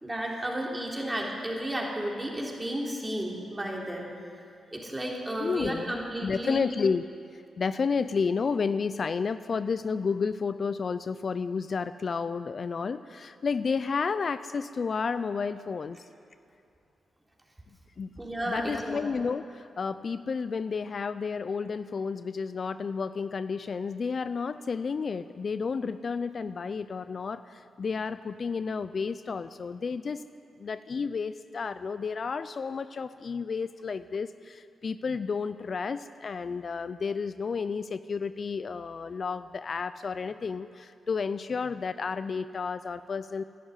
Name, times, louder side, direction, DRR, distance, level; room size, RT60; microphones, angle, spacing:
voice 1, 0.0-4.1 4.7-6.6 18.2-19.0, right 1 dB, 15° right, -2 dB, 3.7 m, -33 dB
voice 2, 5.4-7.1 7.3-16.0 18.0-18.1 18.5-30.2 30.6-43.4, left 5 dB, 55° left, 13 dB, 0.4 m, -31 dB
12.5 x 11.0 x 9.9 m, 2.4 s
supercardioid pair, 50°, 0 cm